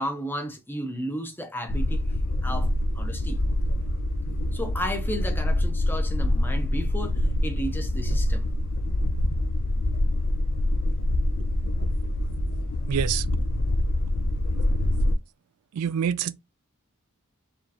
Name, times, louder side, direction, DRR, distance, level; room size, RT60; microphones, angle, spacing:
voice 1, 0.0-2.0 2.4-3.4 4.5-8.5, equal, 10° left, 0.7 m, -33 dB
sound 1, 1.7-15.2, left 1 dB, 55° left, 0.5 m, -25 dB
voice 2, 12.9-13.2 15.7-16.3, right 8 dB, 75° right, 0.3 m, -26 dB
4.4 x 3.1 x 2.8 m
head